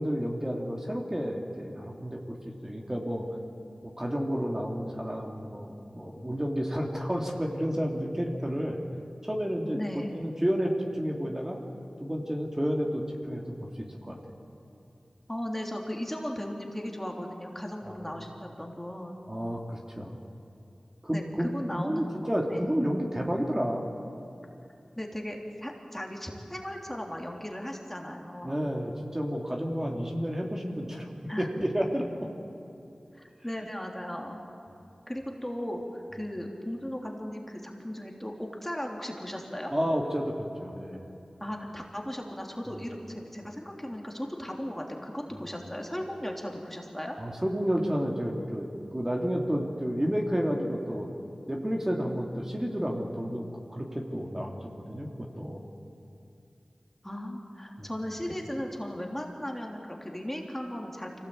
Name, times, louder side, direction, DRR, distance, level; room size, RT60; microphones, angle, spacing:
voice 1, 0.0-2.4 2.6-3.2 3.8-8.8 9.2-11.6 12.0-14.2 17.8-18.0 19.3-20.1 21.0-23.9 28.4-31.1 31.4-32.3 33.6-33.7 39.7-41.0 42.7-42.8 47.2-51.1 51.5-53.4 53.7-55.6 57.8-57.9, equal, 20° right, 0 dB, 2.8 m, -31 dB
voice 2, 9.7-10.1 15.3-19.2 21.1-22.6 25.0-28.6 31.3-31.5 33.2-34.4 35.1-39.7 41.4-47.2 57.0-61.3, equal, 10° left, 1 dB, 3.1 m, -37 dB
24.5 x 17.5 x 8.6 m, 2.7 s
wide cardioid pair, 45°, 2 cm